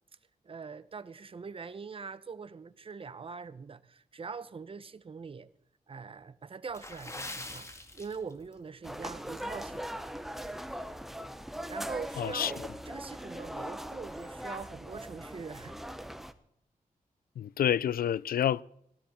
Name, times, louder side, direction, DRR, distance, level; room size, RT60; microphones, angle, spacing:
voice 1, 0.4-5.5 5.9-10.0 11.7-12.6 12.9-15.8, right 5 dB, 35° right, 0.8 m, -43 dB
Water / Splash splatter, 6.7-8.6 8.9-9.1 9.7-9.9 10.4-10.5, left 1 dB, 20° left, 1.8 m, -43 dB
sound 1, 8.8-16.3, equal, ahead, 0.9 m, -40 dB
voice 2, 12.2-12.7 17.4-18.6, left 10 dB, 80° left, 0.4 m, -29 dB
18.5 x 13.0 x 4.3 m
wide cardioid pair, 110°, 15 cm